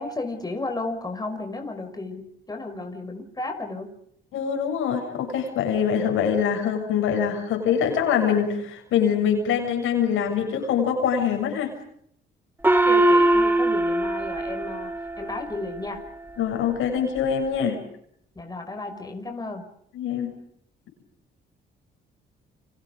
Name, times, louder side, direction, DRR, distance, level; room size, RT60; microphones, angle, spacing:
voice 1, 0.0-3.9 12.9-16.0 18.4-19.7, left 2 dB, 20° left, 4 dB, 5.5 m, -33 dB
voice 2, 4.3-11.7 16.4-17.8 19.9-20.3, left 7 dB, 85° left, 4 dB, 7.1 m, -24 dB
Gong, 12.6-15.6, right 1 dB, 10° right, 2.8 m, -21 dB
30.0 x 26.0 x 5.3 m, 0.71 s
cardioid pair, 90°, 20 cm